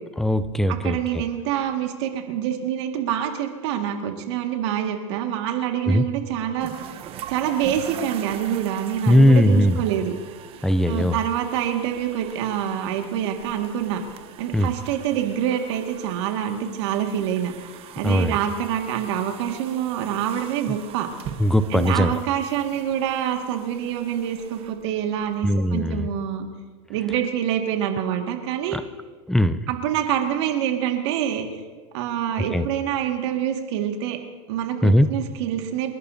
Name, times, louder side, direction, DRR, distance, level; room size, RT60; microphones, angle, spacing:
voice 1, 0.2-1.2 5.9-6.0 9.1-9.8 10.6-11.1 14.5-14.7 18.0-18.4 21.4-22.1 25.4-26.1 28.7-28.8 29.3-29.6 32.5-32.7 34.8-35.1, left 1 dB, ahead, 12 dB, 0.4 m, -19 dB
voice 2, 0.7-6.7 7.3-10.1 10.9-14.0 14.4-17.5 18.0-21.1 21.7-26.5 26.9-28.8 29.7-31.5 31.9-34.2 34.5-35.9, right 10 dB, 60° right, 4 dB, 1.8 m, -26 dB
sound 1, 6.6-25.5, right 9 dB, 35° right, 0.9 m, -42 dB
29.5 x 11.5 x 2.7 m, 1.4 s
supercardioid pair, 135°, 17 cm